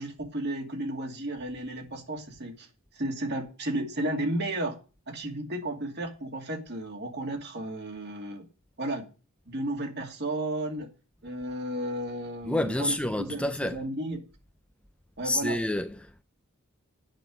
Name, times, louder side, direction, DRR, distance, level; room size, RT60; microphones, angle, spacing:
voice 1, 0.0-2.7 3.0-4.8 5.1-8.4 8.8-9.0 9.5-10.9 11.2-14.2 15.2-15.6, right 1 dB, 50° right, 2.5 m, -33 dB
voice 2, 12.4-13.8 15.2-16.2, left 1 dB, 5° left, 0.4 m, -29 dB
9.1 x 5.7 x 7.7 m
head